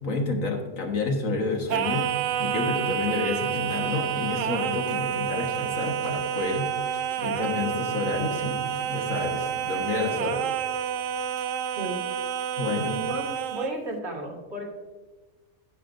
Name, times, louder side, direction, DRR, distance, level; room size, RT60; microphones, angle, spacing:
voice 1, 0.0-2.1 2.4-10.4 12.6-13.0, left 3 dB, 65° left, 2 dB, 1.8 m, -29 dB
Singing, 1.7-13.8, right 9 dB, 70° right, 0.9 m, -29 dB
voice 2, 12.8-14.7, right 1 dB, 50° right, -1 dB, 2.1 m, -33 dB
11.5 x 9.5 x 2.6 m, 1.3 s
omnidirectional pair, 1.5 m